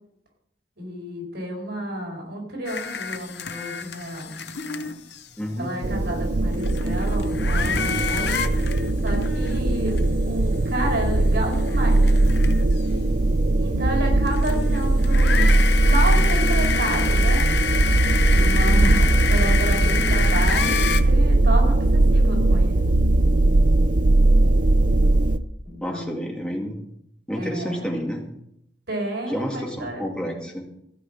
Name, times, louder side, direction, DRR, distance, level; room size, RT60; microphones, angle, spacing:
voice 1, 0.8-4.9 5.6-8.5 9.0-10.0 10.3-12.0 13.6-15.5 15.8-17.4 18.3-22.9 25.6-26.1 27.4-27.9 28.9-30.0, right 1 dB, 75° right, 0 dB, 5.0 m, -31 dB
sound 1, 2.7-5.3 6.2-6.3 6.5-10.0 10.4-10.5 11.2-12.8 14.2-21.0, left 6 dB, 70° left, 0.9 m, -28 dB
voice 2, 5.4-5.7 25.8-26.8 27.3-28.2 29.3-30.6, equal, 5° left, 0 dB, 2.2 m, -29 dB
sound 2, 5.8-25.4, right 2 dB, 45° right, 0.6 m, -19 dB
15.5 x 5.8 x 8.6 m, 0.76 s
head